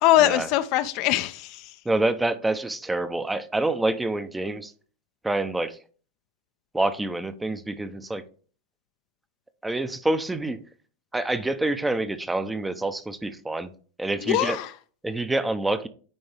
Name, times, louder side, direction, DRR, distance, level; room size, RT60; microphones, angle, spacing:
voice 1, 0.0-1.7 14.2-14.7, left 14 dB, 55° left, 0.5 m, -22 dB
voice 2, 1.8-4.7 5.2-5.8 6.7-8.2 9.6-10.6 11.1-13.7 14.0-14.6 15.0-15.9, right 2 dB, 10° right, 0.6 m, -27 dB
9.5 x 3.5 x 3.4 m
hypercardioid pair, 105°, 0 cm